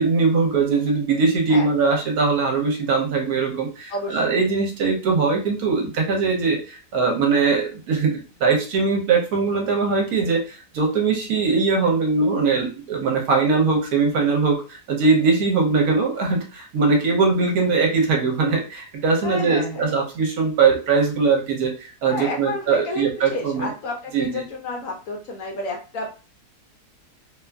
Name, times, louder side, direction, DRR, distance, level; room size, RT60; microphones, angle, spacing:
voice 1, 0.0-23.7 24.1-24.3, right 4 dB, 70° right, 1 dB, 1.1 m, -21 dB
voice 2, 3.9-4.4 19.2-19.9 22.1-26.1, left 2 dB, 65° left, 0 dB, 0.9 m, -30 dB
2.8 x 2.4 x 2.2 m, 0.35 s
omnidirectional pair, 1.7 m